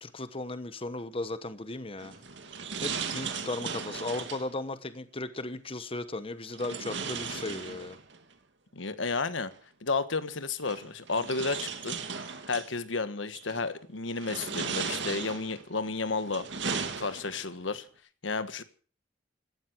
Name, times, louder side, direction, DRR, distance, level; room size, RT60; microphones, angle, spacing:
voice 1, 0.0-2.2 2.8-8.0, left 2 dB, 30° left, 1.1 m, -36 dB
sound 1, 2.0-4.5 6.5-8.2 9.5-9.6 10.6-12.7 13.3-13.7 14.2-15.6 16.1-17.5, right 5 dB, 65° right, 2.3 m, -36 dB
voice 2, 8.7-9.5 9.8-12.0 12.5-17.8 18.2-18.6, left 4 dB, 85° left, 1.4 m, -32 dB
16.5 x 13.0 x 6.1 m
head